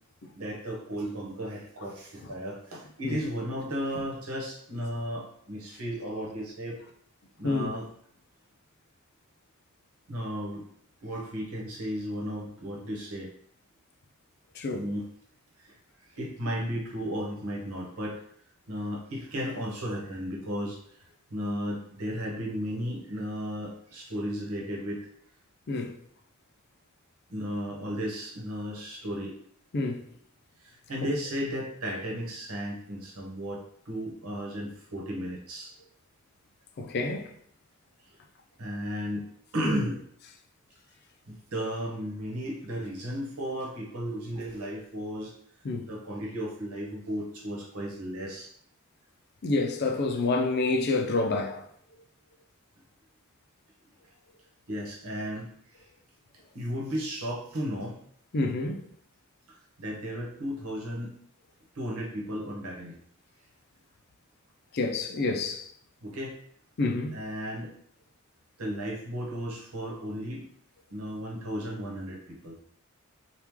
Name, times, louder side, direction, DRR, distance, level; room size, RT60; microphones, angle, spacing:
voice 1, 0.3-6.8 7.4-7.8 10.1-10.6 11.0-13.3 14.7-15.0 15.6-15.8 16.0-18.2 18.7-20.8 21.3-25.0 27.3-29.3 30.6-35.7 38.6-39.2 39.5-40.0 41.3-45.3 45.9-48.5 54.7-55.9 56.5-58.0 59.5-61.1 61.7-62.9 66.0-66.4 67.1-67.7 68.6-70.5 70.9-72.6, equal, 85° right, 1.0 m, -34 dB
voice 2, 14.6-14.9 25.7-26.0 29.7-30.0 36.8-37.3 45.6-45.9 49.4-51.7 58.3-58.9 64.7-65.7 66.8-67.2, left 3 dB, 50° left, 0.4 m, -28 dB
3.0 x 2.3 x 3.5 m
head